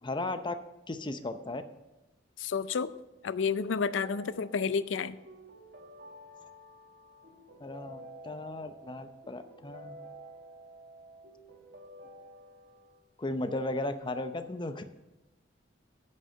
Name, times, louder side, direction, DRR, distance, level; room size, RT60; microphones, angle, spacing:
voice 1, 0.0-0.5 0.9-1.6 7.6-10.0 13.2-14.8, left 2 dB, 25° left, 9 dB, 0.6 m, -35 dB
voice 2, 2.4-2.9 3.2-5.2, left 5 dB, 75° left, 15 dB, 0.4 m, -30 dB
sound 1, 3.9-13.0, right 1 dB, 60° right, 1.8 m, -51 dB
9.5 x 6.4 x 6.7 m, 1.0 s
head